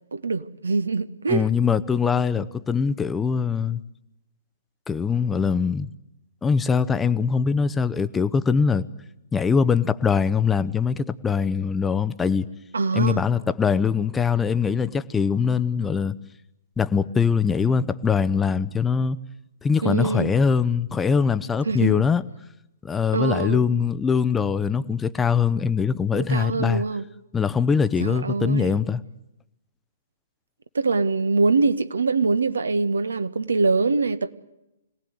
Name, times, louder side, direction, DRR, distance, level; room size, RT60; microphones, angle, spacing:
voice 1, 0.1-1.5 12.7-13.2 19.8-20.3 21.6-22.0 23.1-23.6 26.1-27.0 28.0-28.8 30.7-34.3, right 4 dB, 70° right, 1.5 m, -23 dB
voice 2, 1.3-3.8 4.9-5.9 6.4-8.9 9.3-12.5 12.9-16.2 16.8-19.2 19.6-22.2 22.8-26.8 27.3-29.0, left 6 dB, 10° left, 0.9 m, -22 dB
26.0 x 18.5 x 9.6 m
figure-of-eight pair, 125°, 0 cm